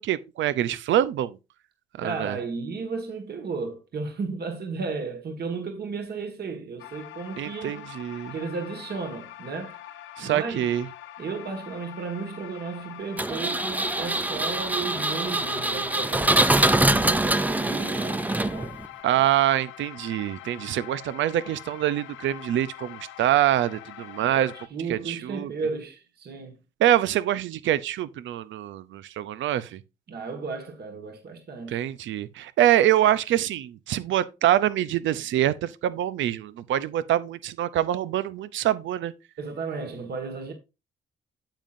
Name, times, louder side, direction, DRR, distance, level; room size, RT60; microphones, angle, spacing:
voice 1, 0.0-1.4 2.0-2.4 7.4-8.3 10.2-10.9 19.0-24.5 24.9-25.5 26.8-29.8 31.7-39.1, right 12 dB, 75° right, 0.6 m, -25 dB
voice 2, 2.0-7.8 8.3-9.8 10.2-10.7 11.2-18.8 19.1-19.3 24.2-26.6 30.1-31.8 39.4-40.5, right 4 dB, 55° right, 1.8 m, -34 dB
sound 1, 6.8-24.7, left 13 dB, 80° left, 0.6 m, -44 dB
Engine, 13.2-18.9, right 2 dB, 10° right, 0.5 m, -24 dB
8.9 x 7.5 x 2.6 m
cardioid pair, 90°, 20 cm